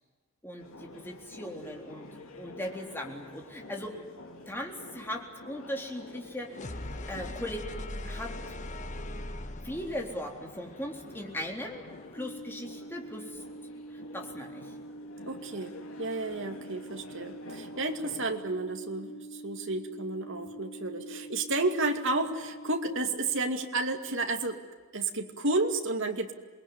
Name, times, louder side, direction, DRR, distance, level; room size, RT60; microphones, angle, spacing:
voice 1, 0.4-4.0 4.5-6.8 7.1-7.6 8.0-8.6 9.6-11.8 12.1-13.4 13.9-14.7, left 1 dB, 10° left, 1 dB, 3.8 m, -39 dB
sound 1, 0.6-18.3, left 2 dB, 70° left, 3.4 m, -50 dB
sound 2, 6.5-12.3, left 1 dB, 35° left, 1.4 m, -41 dB
sound 3, 12.2-23.0, right 2 dB, 50° left, 5.4 m, -45 dB
voice 2, 15.2-24.6 24.9-26.3, right 2 dB, 60° right, 5 dB, 2.6 m, -31 dB
27.5 x 20.5 x 9.7 m, 1.4 s
head